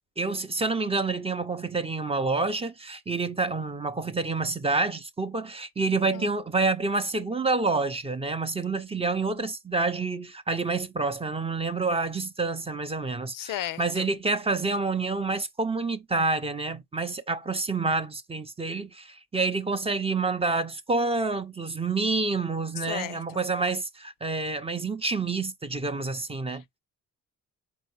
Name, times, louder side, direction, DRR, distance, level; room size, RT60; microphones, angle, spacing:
voice 1, 0.2-26.6, right 3 dB, 20° right, 0.5 m, -28 dB
voice 2, 13.3-14.0 22.9-23.4 26.5-26.6, left 13 dB, 85° left, 0.5 m, -35 dB
4.5 x 2.7 x 3.0 m
cardioid pair, 110°, 32 cm